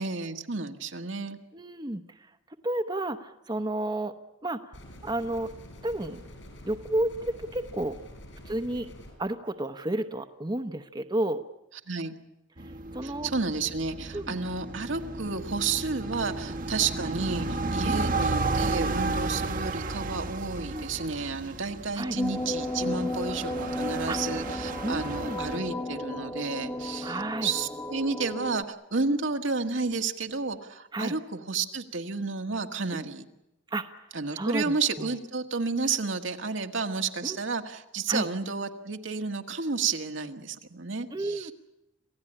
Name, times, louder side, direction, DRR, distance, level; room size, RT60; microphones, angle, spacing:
voice 1, 0.0-1.4 11.9-12.2 13.0-33.2 34.1-41.5, right 4 dB, 80° right, 5 dB, 1.7 m, -31 dB
voice 2, 1.5-2.2 2.6-4.1 4.4-4.8 5.0-5.5 5.8-6.2 6.6-8.0 8.4-8.9 9.2-11.4 12.6-13.3 14.1-14.4 17.8-18.2 20.7-20.9 22.0-22.2 24.1-24.2 24.8-25.4 27.0-27.5 29.0-29.2 30.9-31.1 32.9-33.1 33.7-33.9 34.3-35.1 37.2-37.4 38.1-38.3 41.1-41.5, right 1 dB, 20° right, 8 dB, 0.9 m, -31 dB
sound 1, 4.7-9.1, equal, 75° left, 7.4 m, -47 dB
sound 2, 12.6-25.6, right 3 dB, 45° right, 1.1 m, -33 dB
sound 3, 22.2-28.6, left 1 dB, 15° left, 1.2 m, -33 dB
27.0 x 16.5 x 10.0 m, 0.90 s
head